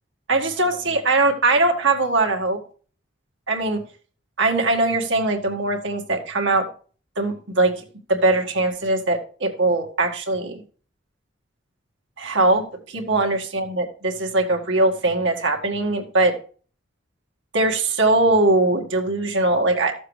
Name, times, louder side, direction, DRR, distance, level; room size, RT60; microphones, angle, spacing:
voice 1, 0.3-2.6 3.5-3.8 4.4-6.7 7.2-7.8 8.1-10.6 12.2-16.3 17.5-19.9, right 2 dB, 70° right, 2 dB, 1.8 m, -21 dB
13.5 x 7.3 x 3.2 m, 0.41 s
head